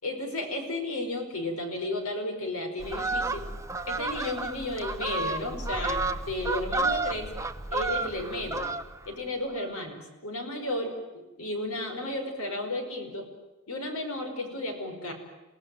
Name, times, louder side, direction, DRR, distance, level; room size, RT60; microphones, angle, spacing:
voice 1, 0.0-3.4 3.9-7.3 7.7-8.7 9.0-13.3 13.7-15.1, left 1 dB, 80° left, 5 dB, 5.1 m, -33 dB
Fowl, 2.8-9.1 9.5-9.7, right 3 dB, 15° right, 0.8 m, -31 dB
28.5 x 18.0 x 9.2 m, 1.1 s
head